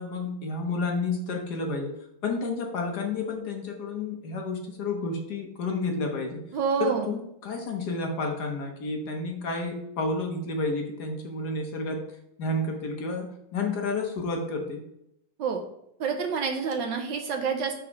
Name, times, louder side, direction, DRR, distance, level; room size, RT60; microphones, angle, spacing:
voice 1, 0.0-1.9 2.2-6.4 6.8-12.0 12.4-14.8, left 3 dB, 60° left, 2 dB, 1.2 m, -30 dB
voice 2, 6.5-7.1 15.4-15.6 16.0-17.8, right 6 dB, 70° right, 4 dB, 1.2 m, -28 dB
6.0 x 3.8 x 5.2 m, 0.78 s
omnidirectional pair, 2.3 m